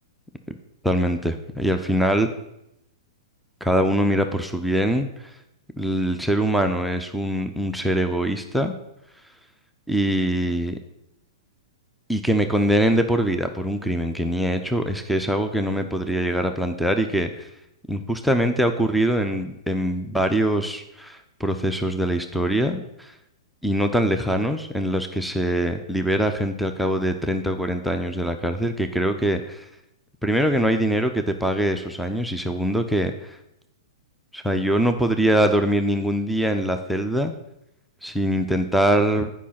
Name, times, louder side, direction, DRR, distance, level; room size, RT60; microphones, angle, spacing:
voice 1, 0.8-2.3 3.6-5.1 5.8-8.7 9.9-10.8 12.1-17.5 17.9-23.1 23.6-29.6 30.2-33.4 34.3-37.3 38.0-39.3, equal, ahead, 6 dB, 0.5 m, -23 dB
8.4 x 5.1 x 5.7 m, 0.84 s
hypercardioid pair, 115°, 3 cm